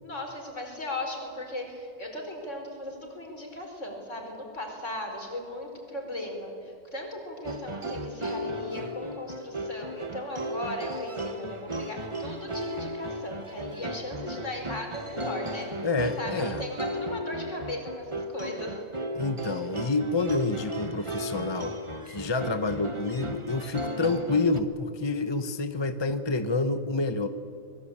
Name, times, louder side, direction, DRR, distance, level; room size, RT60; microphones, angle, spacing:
voice 1, 0.0-18.8, left 1 dB, 55° left, 2 dB, 5.2 m, -37 dB
sound 1, 7.4-24.6, right 1 dB, 20° right, 1.2 m, -36 dB
voice 2, 15.8-16.6 19.1-21.7 22.1-27.3, left 3 dB, 20° left, 9 dB, 0.8 m, -28 dB
25.0 x 21.5 x 8.7 m, 2.4 s
omnidirectional pair, 1.5 m